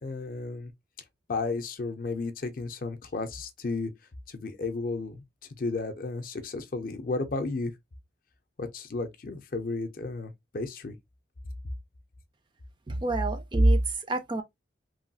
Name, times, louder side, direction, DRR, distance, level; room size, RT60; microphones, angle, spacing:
voice 1, 0.0-0.7 1.3-3.9 4.3-5.2 5.6-7.7 8.6-11.0, left 3 dB, 50° left, 0.5 m, -33 dB
voice 2, 12.9-14.4, right 1 dB, 25° right, 0.3 m, -25 dB
3.1 x 2.2 x 2.6 m
head